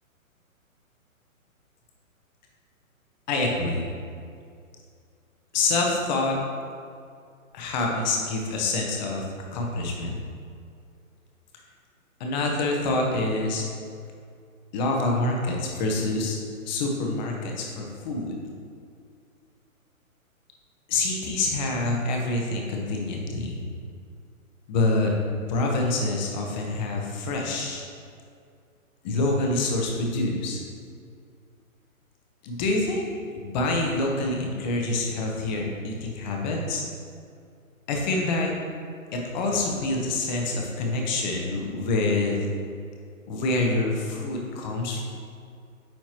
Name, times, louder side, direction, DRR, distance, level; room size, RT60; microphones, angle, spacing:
voice 1, 3.3-3.9 5.5-6.4 7.5-9.2 9.5-10.1 12.2-13.6 14.7-16.4 16.6-18.3 20.9-23.6 24.7-25.1 25.5-27.9 29.0-30.6 32.4-36.8 37.9-38.5 39.1-42.4 43.3-45.0, left 2 dB, 30° left, 0 dB, 1.1 m, -26 dB
9.0 x 4.5 x 3.0 m, 2.3 s
hypercardioid pair, 140°, 42 cm